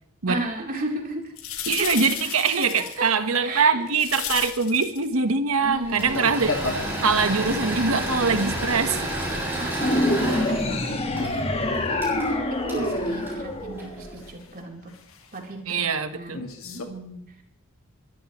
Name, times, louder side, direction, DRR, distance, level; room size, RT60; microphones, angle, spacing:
voice 1, 0.3-1.3 1.8-1.9 3.4-3.9 5.6-6.3 9.6-14.8 15.3-15.8 16.1-17.2, right 1 dB, 40° right, 0 dB, 3.8 m, -35 dB
sound 1, 1.4-3.1 3.9-5.1 5.9-6.9 7.6-9.3 9.6-12.1 12.5-12.6 14.2-14.4 14.9-15.4 16.3-16.8, left 5 dB, 70° left, 2.1 m, -34 dB
voice 2, 1.7-6.5 7.0-9.1 15.7-16.4, right 5 dB, 75° right, 9 dB, 1.4 m, -23 dB
Engine / Mechanisms, 5.8-14.2, right 1 dB, 10° right, 7.3 m, -31 dB
sound 2, 9.8-14.3, left 1 dB, 30° left, 1.7 m, -26 dB
23.0 x 14.0 x 3.2 m, 0.75 s
head